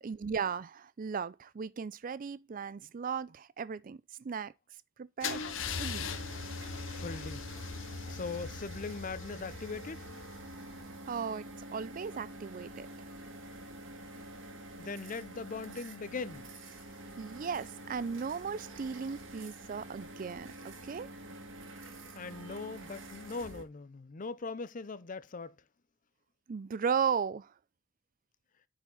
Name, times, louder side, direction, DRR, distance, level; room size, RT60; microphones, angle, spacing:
voice 1, 0.0-4.5 5.0-6.0 11.1-11.4 11.7-12.9 17.2-21.1 26.5-27.5, right 6 dB, 45° right, 0.4 m, -36 dB
Car / Engine starting / Idling, 5.2-11.1, left 5 dB, 75° left, 0.8 m, -40 dB
sound 1, 5.3-23.6, right 1 dB, 75° right, 1.9 m, -47 dB
voice 2, 6.9-7.5 8.1-10.1 14.8-16.5 22.1-25.6, left 4 dB, 40° left, 0.6 m, -40 dB
9.7 x 4.9 x 3.8 m
head